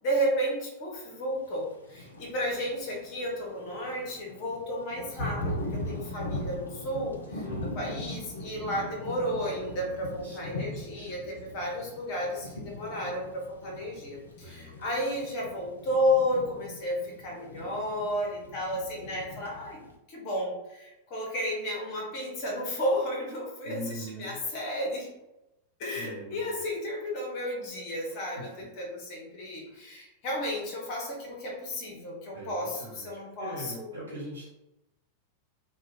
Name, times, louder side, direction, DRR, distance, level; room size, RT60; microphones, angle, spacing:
voice 1, 0.0-19.8 20.1-25.1 25.8-33.9, equal, 40° left, -1 dB, 0.9 m, -32 dB
Thunder / Rain, 1.8-19.9, left 1 dB, 75° left, 0.4 m, -40 dB
voice 2, 7.4-7.8 10.2-11.3 14.4-14.8 23.6-24.4 25.9-26.4 28.1-28.7 29.6-29.8 32.3-33.1 33.4-34.5, right 1 dB, 75° right, -6 dB, 1.0 m, -42 dB
2.3 x 2.2 x 3.4 m, 0.92 s
figure-of-eight pair, 90°, 0 cm